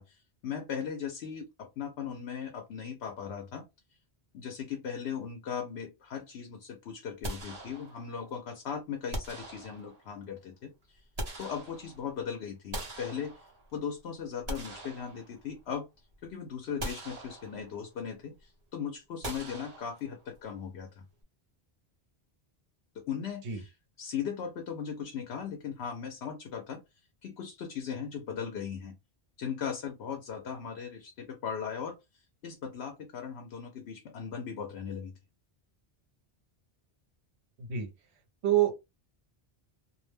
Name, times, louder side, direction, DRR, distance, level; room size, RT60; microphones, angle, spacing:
voice 1, 0.0-3.6 4.3-11.0 11.4-13.5 13.7-15.9 16.2-21.0 22.9-23.7 24.0-26.8 27.2-29.0 29.4-35.1, left 7 dB, 75° left, 0.9 m, -38 dB
sound 1, 7.2-8.3 9.1-10.2 10.8-12.2 12.7-13.8 14.3-15.7 16.1-16.3 16.8-17.9 19.2-20.4, right 1 dB, 40° right, 0.8 m, -41 dB
voice 2, 37.6-37.9 38.4-38.8, right 11 dB, 80° right, 1.0 m, -27 dB
2.5 x 2.0 x 3.2 m
omnidirectional pair, 1.1 m